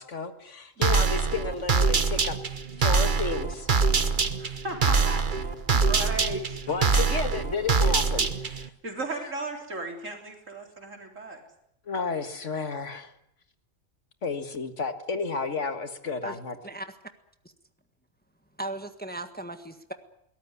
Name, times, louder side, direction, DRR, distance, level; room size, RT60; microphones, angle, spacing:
voice 1, 0.0-2.4 2.8-3.7 6.7-8.7 11.9-13.1 14.2-16.6, left 4 dB, 65° left, 8 dB, 2.0 m, -32 dB
sound 1, 0.8-8.7, right 4 dB, 40° right, 1.2 m, -24 dB
voice 2, 0.8-1.2 4.4-6.6 8.8-11.4, right 2 dB, 70° right, 3 dB, 4.2 m, -36 dB
voice 3, 18.6-19.9, right 2 dB, 5° left, 8 dB, 1.5 m, -36 dB
22.0 x 18.5 x 9.6 m, 0.76 s
omnidirectional pair, 1.4 m